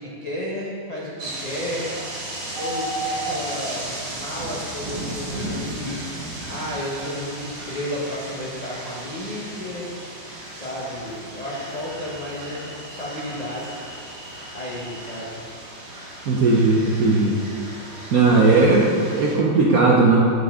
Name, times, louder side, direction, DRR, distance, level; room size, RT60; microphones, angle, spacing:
voice 1, 0.0-1.9 2.6-6.0 6.5-9.9 10.5-13.7 14.5-15.4, left 1 dB, 90° left, -6 dB, 0.3 m, -32 dB
sound 1, 1.2-19.4, right 1 dB, 55° right, 2.0 m, -34 dB
voice 2, 16.3-17.4 18.1-20.2, right 3 dB, 70° right, -3 dB, 0.8 m, -17 dB
7.0 x 6.5 x 3.5 m, 2.4 s
omnidirectional pair, 2.3 m